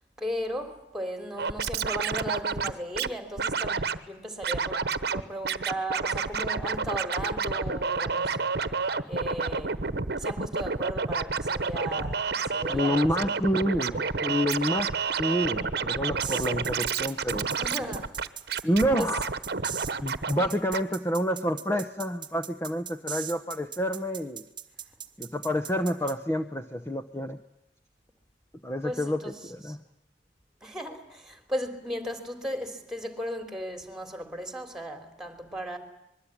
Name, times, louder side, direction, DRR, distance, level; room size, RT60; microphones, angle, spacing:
voice 1, 0.2-8.4 9.1-9.8 10.2-13.3 17.6-18.2 19.0-19.1 20.4-20.5 28.8-29.4 29.7-29.8 30.6-35.8, equal, 5° right, 3.3 m, -36 dB
Scratching (performance technique), 1.4-3.1 3.4-4.0 4.4-5.2 5.5-20.5 20.7-20.8, right 5 dB, 60° right, 1.1 m, -29 dB
voice 2, 12.7-17.6 18.6-19.3 20.0-24.4 25.2-27.4 28.6-29.8, equal, 15° left, 0.9 m, -28 dB
sound 1, 16.2-26.1, right 9 dB, 25° right, 1.4 m, -39 dB
25.5 x 22.0 x 9.9 m
head